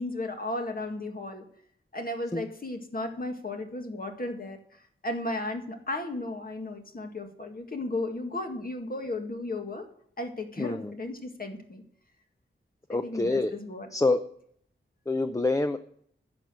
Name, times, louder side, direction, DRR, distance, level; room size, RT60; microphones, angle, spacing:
voice 1, 0.0-1.5 1.9-9.9 10.2-11.8 12.9-13.9, left 2 dB, 45° left, 4 dB, 1.9 m, -35 dB
voice 2, 10.6-10.9 12.9-13.5 13.9-14.2 15.1-15.8, left 2 dB, 15° left, 9 dB, 0.6 m, -26 dB
10.5 x 6.7 x 7.5 m, 0.64 s
wide cardioid pair, 100°, 21 cm